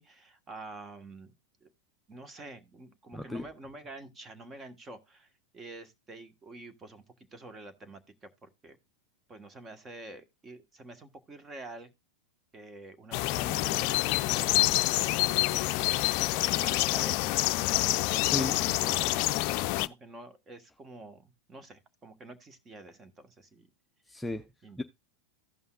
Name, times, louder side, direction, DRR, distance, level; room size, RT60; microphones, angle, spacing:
voice 1, 0.0-1.3 1.6-1.7 2.1-7.0 7.3-8.8 9.3-11.9 12.5-16.3 16.6-17.1 18.4-23.7 24.6-24.8, right 2 dB, 20° right, 1.3 m, -48 dB
voice 2, 3.1-3.5 18.3-18.6 24.1-24.5 24.8-24.9, left 1 dB, 5° left, 0.5 m, -34 dB
sound 1, 13.1-19.9, left 18 dB, 55° left, 0.4 m, -27 dB
16.0 x 5.5 x 2.4 m
hypercardioid pair, 110°, 0 cm